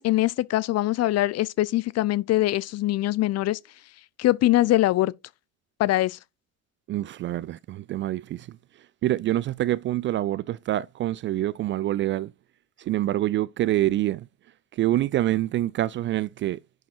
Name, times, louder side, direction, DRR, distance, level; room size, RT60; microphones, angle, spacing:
voice 1, 0.0-3.6 4.2-5.1 5.8-6.2, left 15 dB, 40° left, 0.7 m, -23 dB
voice 2, 6.9-8.6 9.0-12.3 12.8-14.3 14.7-16.6, right 14 dB, 30° right, 0.4 m, -26 dB
10.5 x 5.0 x 4.5 m
figure-of-eight pair, 60°, 39 cm